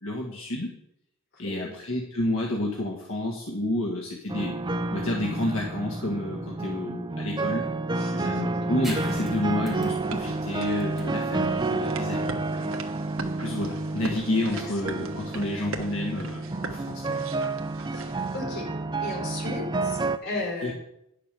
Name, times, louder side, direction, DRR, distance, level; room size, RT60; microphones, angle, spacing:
voice 1, 0.0-0.8 1.4-7.7 8.2-12.8 13.4-17.2 20.6-20.7, left 1 dB, 80° left, -1 dB, 1.5 m, -30 dB
voice 2, 1.3-1.8 8.0-8.8 12.5-12.7 14.5-14.6 17.1-17.2 17.9-18.7 19.0-20.7, left 2 dB, 55° left, -1 dB, 4.1 m, -36 dB
sound 1, 4.3-20.2, right 3 dB, 20° right, 0.5 m, -30 dB
sound 2, 8.8-16.0, right 1 dB, ahead, 2.1 m, -46 dB
sound 3, 10.0-18.4, right 3 dB, 70° right, 1.2 m, -41 dB
10.0 x 6.6 x 6.8 m, 0.80 s
head